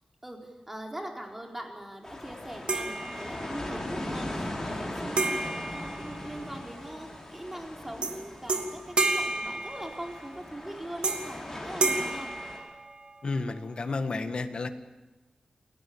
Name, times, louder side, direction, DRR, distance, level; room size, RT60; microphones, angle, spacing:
voice 1, 0.2-12.3, right 1 dB, 15° right, 1 dB, 4.3 m, -41 dB
sound 1, 2.0-12.6, left 1 dB, 25° left, 6.8 m, -39 dB
sound 2, 2.7-3.7 5.2-6.7 8.0-8.2 8.5-10.3 11.0-11.4 11.8-13.2, right 3 dB, 55° right, 2.9 m, -31 dB
voice 2, 13.2-14.7, left 3 dB, 55° left, 8 dB, 1.8 m, -31 dB
29.0 x 17.5 x 8.8 m, 1.1 s
wide cardioid pair, 120°, 2 cm